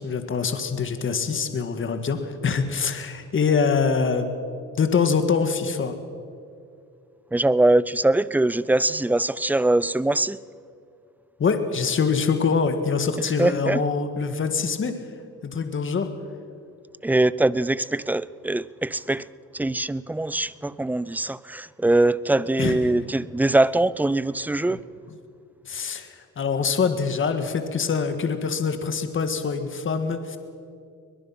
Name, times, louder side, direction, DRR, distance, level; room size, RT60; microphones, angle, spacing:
voice 1, 0.0-4.3 4.8-6.0 11.4-15.0 15.4-16.1 22.6-22.8 24.6-24.8 25.7-30.4, left 5 dB, 40° left, 1.8 m, -24 dB
voice 2, 7.3-10.4 13.2-13.8 17.0-19.3 19.5-24.8, right 2 dB, 5° right, 0.4 m, -22 dB
22.0 x 21.0 x 5.8 m
cardioid pair, 90°, 30 cm